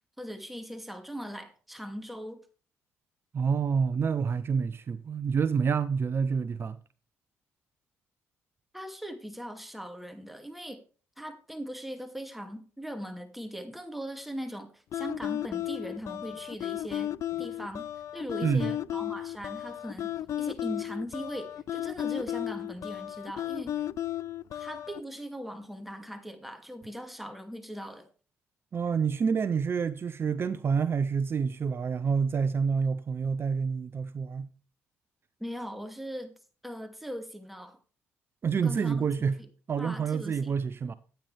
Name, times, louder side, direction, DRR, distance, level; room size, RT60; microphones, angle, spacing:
voice 1, 0.2-2.4 8.7-10.8 11.2-17.9 18.1-20.1 20.4-23.8 24.5-28.1 35.4-36.3 36.6-37.8 38.6-39.1 39.4-39.5 39.8-40.5, equal, ahead, 2.4 m, -40 dB
voice 2, 3.3-6.8 18.4-18.7 28.7-34.5 38.4-39.4 39.7-40.9, right 6 dB, 45° right, 0.6 m, -28 dB
sound 1, 14.9-25.0, left 12 dB, 65° left, 0.4 m, -34 dB
13.5 x 9.2 x 3.4 m
supercardioid pair, 65°, 6 cm